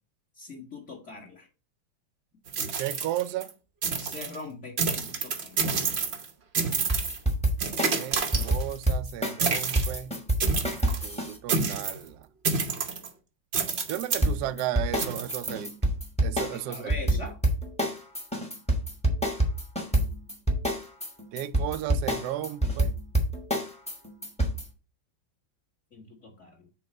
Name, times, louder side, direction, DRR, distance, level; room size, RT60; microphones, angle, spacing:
voice 1, 0.4-1.5 4.0-5.7 16.5-17.3 25.9-26.7, left 3 dB, 40° left, 1.6 m, -42 dB
sound 1, 2.5-3.5 3.8-4.4 4.8-6.3 6.5-7.2 7.6-8.8 9.4-10.0 10.4-11.1 11.5-12.0 12.4-13.1 13.5-14.3 15.0-15.5, right 5 dB, 50° right, 0.8 m, -29 dB
voice 2, 2.8-3.5 7.9-10.2 11.0-12.3 13.9-15.7 16.2-16.9 21.3-22.9, right 12 dB, 75° right, 1.0 m, -34 dB
sound 2, 6.7-11.3 14.2-24.6, right 1 dB, 5° left, 0.9 m, -26 dB
6.2 x 3.9 x 5.3 m
omnidirectional pair, 2.1 m